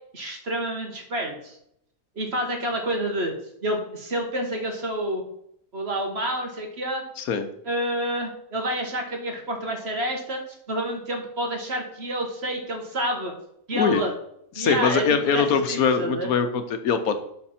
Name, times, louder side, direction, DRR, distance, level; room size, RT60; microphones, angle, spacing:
voice 1, 0.1-1.6 2.2-3.3 3.6-5.2 5.7-7.0 7.7-10.4 10.7-13.3 13.7-14.1 14.6-16.3, right 1 dB, 45° right, 2 dB, 1.7 m, -28 dB
voice 2, 14.6-17.1, left 6 dB, 80° left, 8 dB, 1.3 m, -22 dB
12.0 x 4.2 x 4.3 m, 0.74 s
omnidirectional pair, 1.5 m